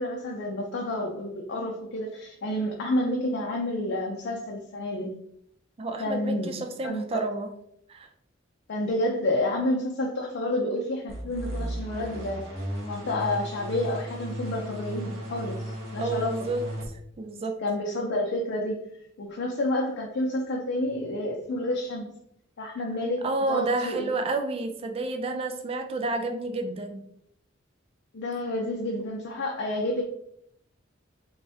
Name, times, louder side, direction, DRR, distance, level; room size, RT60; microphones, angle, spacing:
voice 1, 0.0-5.1 6.0-6.5 6.8-7.2 8.7-12.5 12.8-15.6 15.9-16.5 17.6-18.8 19.2-22.2 22.6-24.1 28.1-30.0, left 1 dB, 60° left, -1 dB, 0.5 m, -29 dB
voice 2, 5.8-7.5 7.9-8.1 16.0-16.7 17.2-17.6 23.2-27.0, right 3 dB, 30° right, 5 dB, 0.3 m, -30 dB
sound 1, 11.1-16.9, equal, 85° right, 1.3 m, -35 dB
3.4 x 3.2 x 2.7 m, 0.71 s
head